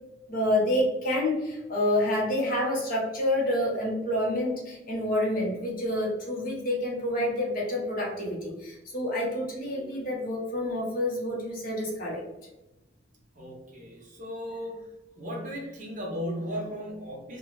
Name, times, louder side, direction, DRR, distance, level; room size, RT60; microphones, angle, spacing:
voice 1, 0.3-12.2, left 1 dB, 50° left, -3 dB, 0.8 m, -28 dB
voice 2, 13.4-14.8 15.2-17.4, equal, 45° right, -1 dB, 0.7 m, -36 dB
2.4 x 2.3 x 3.1 m, 0.98 s
head